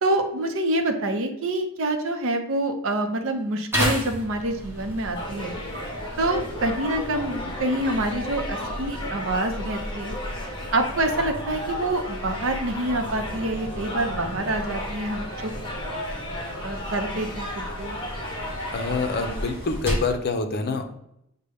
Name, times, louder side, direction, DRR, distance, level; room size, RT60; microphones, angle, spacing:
voice 1, 0.0-5.6 6.2-10.2 10.7-15.5 16.6-18.0, right 1 dB, 65° right, 5 dB, 0.7 m, -26 dB
sound 1, 3.7-20.2, equal, 10° right, 1.0 m, -34 dB
sound 2, 5.1-19.5, left 1 dB, 20° left, 0.9 m, -34 dB
voice 2, 18.7-20.8, left 4 dB, 50° left, 6 dB, 0.5 m, -26 dB
6.6 x 2.2 x 3.4 m, 0.79 s
head